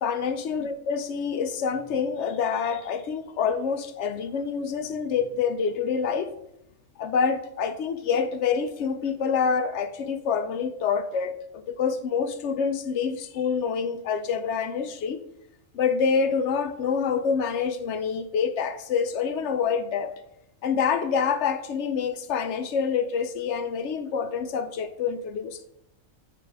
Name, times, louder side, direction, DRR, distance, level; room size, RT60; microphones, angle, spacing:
voice 1, 0.0-6.3 7.0-15.2 15.7-20.2 20.6-25.7, left 6 dB, 65° left, 10 dB, 0.9 m, -27 dB
8.4 x 5.0 x 3.4 m, 0.78 s
omnidirectional pair, 1.4 m